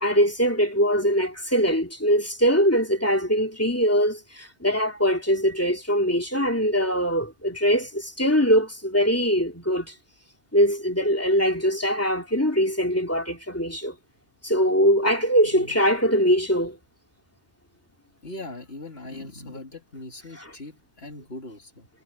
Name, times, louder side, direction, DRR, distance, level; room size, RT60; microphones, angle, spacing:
voice 1, 0.0-9.9 10.5-13.9 14.4-16.8 20.4-20.5, equal, 15° left, 2.7 m, -22 dB
voice 2, 18.2-21.9, left 2 dB, 65° left, 3.6 m, -40 dB
omnidirectional pair, 1.1 m